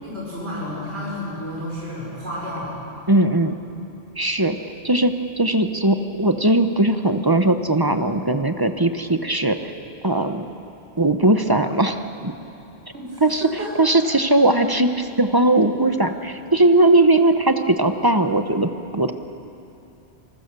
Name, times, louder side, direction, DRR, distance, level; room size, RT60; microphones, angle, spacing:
voice 1, 0.0-2.7 12.9-13.9, left 1 dB, 75° right, -7 dB, 5.7 m, -31 dB
voice 2, 3.1-3.6 4.2-4.6 4.8-9.6 10.0-10.4 11.0-12.5 13.2-13.5 13.8-19.1, right 2 dB, 20° right, 8 dB, 0.9 m, -19 dB
27.5 x 20.5 x 6.8 m, 2.8 s
omnidirectional pair, 1.1 m